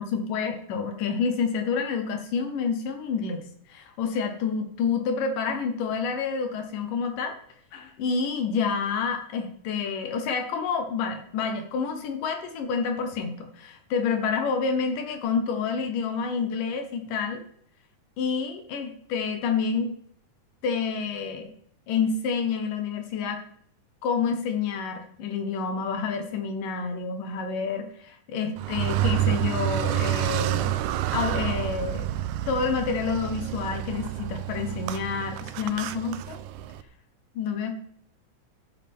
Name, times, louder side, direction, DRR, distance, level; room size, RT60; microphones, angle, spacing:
voice 1, 0.0-3.4 3.7-7.4 7.7-17.4 18.2-20.0 20.6-21.5 21.9-23.4 24.0-30.8 31.1-32.1 32.5-36.4 37.4-37.7, left 5 dB, 80° left, 6 dB, 2.8 m, -28 dB
Car, 28.6-36.8, right 13 dB, 80° right, 2.0 m, -29 dB
13.5 x 10.5 x 3.6 m, 0.65 s
omnidirectional pair, 3.8 m